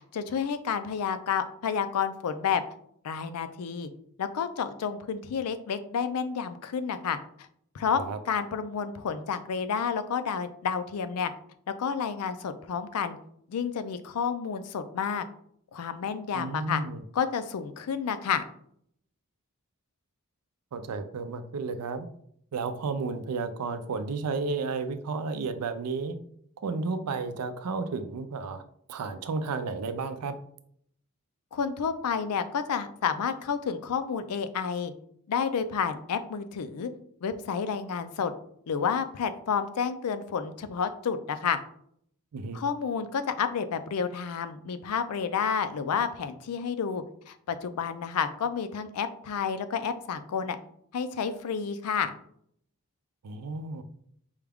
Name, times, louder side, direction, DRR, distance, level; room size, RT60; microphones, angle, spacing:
voice 1, 0.1-2.6 3.0-3.9 4.2-7.2 7.7-11.3 11.8-13.2 13.5-15.2 15.7-16.8 17.1-18.4 31.5-34.9 35.3-36.9 37.2-38.3 38.7-41.6 42.5-50.6 50.9-52.1, left 6 dB, 80° left, 11 dB, 0.4 m, -30 dB
voice 2, 16.3-17.0 20.7-22.1 22.5-26.2 26.6-28.6 28.9-30.4 42.3-42.6 53.2-53.8, right 4 dB, 90° right, 10 dB, 0.4 m, -32 dB
4.8 x 2.3 x 3.4 m, 0.67 s
head